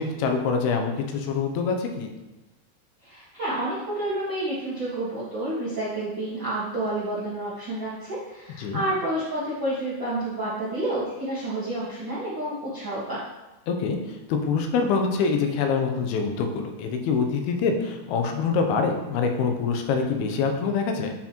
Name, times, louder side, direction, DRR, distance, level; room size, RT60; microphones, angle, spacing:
voice 1, 0.0-2.1 8.6-8.8 13.7-21.1, left 5 dB, 85° left, 4 dB, 2.5 m, -25 dB
voice 2, 3.0-13.2, right 1 dB, 60° right, -10 dB, 1.2 m, -29 dB
9.2 x 4.4 x 2.9 m, 1.0 s
omnidirectional pair, 4.5 m